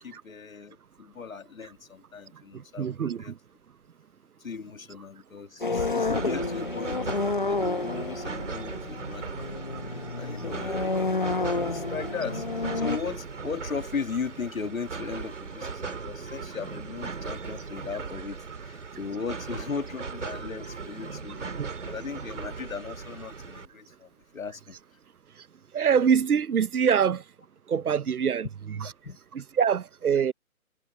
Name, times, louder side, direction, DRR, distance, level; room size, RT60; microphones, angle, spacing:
voice 1, 0.0-3.3 4.4-7.1 7.4-9.8 10.2-24.7 29.0-29.2, left 5 dB, 65° left, 2.1 m, -37 dB
voice 2, 2.3-3.4 5.8-5.9 21.6-21.7 25.4-25.5 25.7-27.2 27.7-28.5 29.3-30.3, right 7 dB, 80° right, 0.8 m, -25 dB
sound 1, 5.6-13.0, left 3 dB, 35° left, 0.9 m, -30 dB
sound 2, 6.1-23.7, right 5 dB, 55° right, 2.1 m, -38 dB
hypercardioid pair, 180°, 44 cm